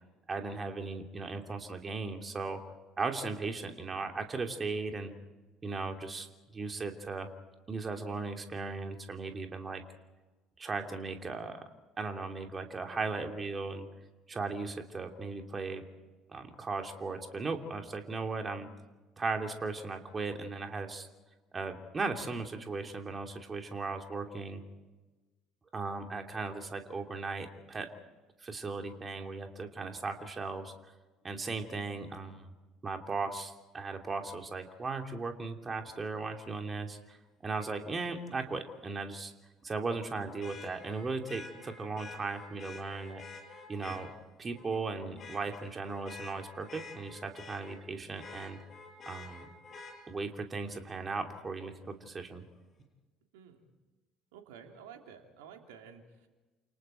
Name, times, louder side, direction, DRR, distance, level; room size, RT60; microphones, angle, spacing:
voice 1, 0.3-2.6 3.0-5.1 5.6-6.3 6.5-7.3 7.7-9.8 10.6-11.6 12.0-13.9 14.3-15.8 16.3-18.7 19.2-21.1 21.5-24.6 25.7-27.9 28.4-30.7 31.2-32.5 32.8-37.2 37.4-39.3 39.6-43.2 43.7-44.1 44.4-48.6 49.1-49.5 50.1-52.4, right 3 dB, 30° right, 4 dB, 2.9 m, -37 dB
Vehicle horn car horn honking, 37.6-37.7 40.4-44.0 44.5-44.8 45.2-47.8 48.2-49.9 51.8-51.9, left 3 dB, 45° left, 7.4 m, -48 dB
voice 2, 54.3-56.3, right 7 dB, 70° right, 3 dB, 3.1 m, -52 dB
29.5 x 28.0 x 4.5 m, 1.2 s
figure-of-eight pair, 60°, 0 cm